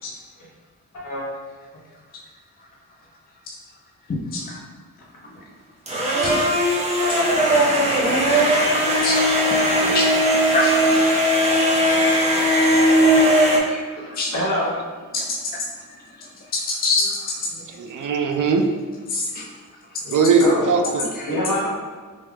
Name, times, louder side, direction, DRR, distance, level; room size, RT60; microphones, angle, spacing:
voice 1, 0.9-1.2 5.3-5.4 5.9-6.0 9.6-9.9 11.8-11.9 14.3-14.7 17.5-17.6 20.4-20.7 21.3-21.7, equal, 60° left, -6 dB, 1.4 m, -25 dB
voice 2, 4.1-4.6 9.0-9.2 9.6-10.1 10.5-11.0 12.2-14.4 15.1-17.4 19.1-19.5 21.2-21.3, left 3 dB, 30° left, -1 dB, 0.4 m, -27 dB
sound 1, 5.9-13.6, equal, 20° right, 0.8 m, -18 dB
voice 3, 17.7-18.7 20.1-21.1, right 4 dB, 65° right, 4 dB, 0.5 m, -19 dB
3.2 x 3.1 x 3.4 m, 1.4 s
wide cardioid pair, 100°, 34 cm